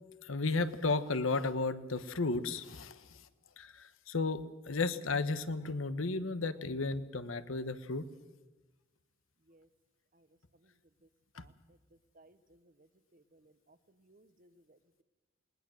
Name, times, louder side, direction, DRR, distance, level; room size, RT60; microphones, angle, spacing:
voice 1, 0.2-3.1 3.6-8.1 11.4-11.5, left 3 dB, 80° left, 13 dB, 1.1 m, -34 dB
voice 2, 12.2-12.6 13.1-13.8 14.0-15.0, right 2 dB, 40° right, 13 dB, 0.9 m, -63 dB
20.0 x 19.5 x 7.7 m, 1.2 s
head